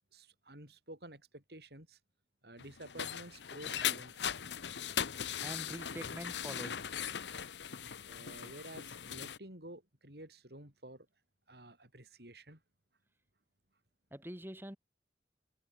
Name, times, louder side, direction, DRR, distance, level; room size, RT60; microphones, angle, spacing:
voice 1, 0.1-2.0 2.4-4.3 8.0-11.1 11.5-12.6, right 1 dB, 65° right, 7.5 m, -51 dB
sound 1, 2.6-9.4, left 9 dB, 85° left, 0.9 m, -39 dB
voice 2, 5.4-6.9 14.1-14.8, equal, 15° right, 4.9 m, -45 dB
head